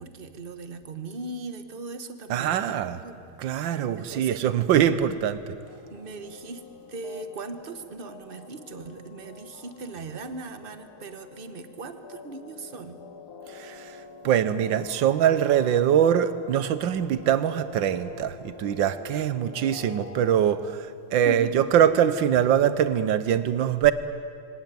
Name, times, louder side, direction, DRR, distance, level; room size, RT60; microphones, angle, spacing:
voice 1, 0.0-4.4 5.9-6.6 6.9-13.0 21.1-21.7, right 3 dB, 35° right, 9 dB, 1.1 m, -39 dB
voice 2, 2.3-3.0 3.4-5.6 13.5-23.9, right 9 dB, 65° right, 14 dB, 1.5 m, -23 dB
sound 1, 5.6-20.6, left 5 dB, 80° left, 2.3 m, -46 dB
25.5 x 17.5 x 9.1 m, 2.4 s
omnidirectional pair, 2.4 m